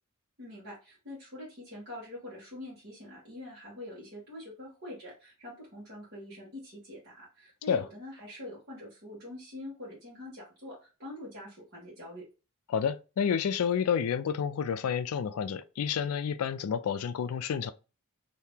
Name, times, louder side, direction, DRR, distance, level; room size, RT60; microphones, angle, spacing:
voice 1, 0.4-12.3, left 1 dB, 45° right, 1.3 m, -45 dB
voice 2, 12.7-17.7, left 7 dB, 75° left, 0.3 m, -29 dB
2.8 x 2.7 x 3.5 m
head